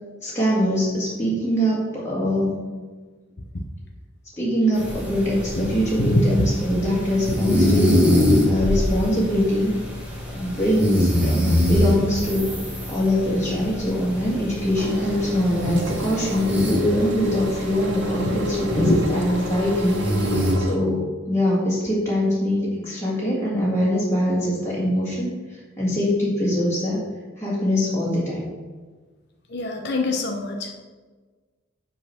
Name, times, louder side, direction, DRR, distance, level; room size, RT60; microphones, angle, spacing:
voice 1, 0.2-2.7 4.4-8.0 8.4-9.7 10.3-12.5 12.9-20.2 20.6-27.0 27.4-28.5, equal, 15° left, -8 dB, 1.9 m, -23 dB
sound 1, 4.7-20.5, left 1 dB, 10° right, 2.0 m, -25 dB
voice 2, 5.5-6.4 18.7-19.0 29.5-30.8, left 1 dB, 55° left, 2 dB, 0.8 m, -23 dB
Engine, 14.8-20.8, right 1 dB, 65° right, 0.9 m, -32 dB
7.7 x 4.0 x 5.8 m, 1.4 s
head